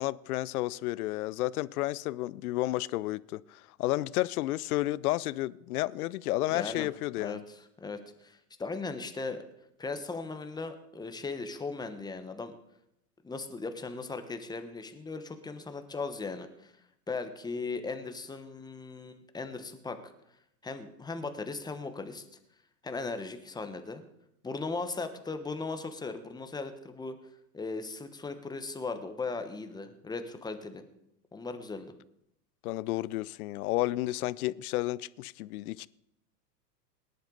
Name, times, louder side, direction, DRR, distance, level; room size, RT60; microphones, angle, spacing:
voice 1, 0.0-7.4 32.6-35.9, left 17 dB, 65° left, 0.6 m, -31 dB
voice 2, 6.5-6.9 7.2-9.4 9.8-12.5 13.2-16.7 17.1-20.1 20.6-22.2 22.8-24.0 24.4-27.2 27.5-30.8 31.3-31.9, left 3 dB, 10° left, 1.0 m, -38 dB
18.5 x 10.5 x 3.9 m
hypercardioid pair, 110°, 49 cm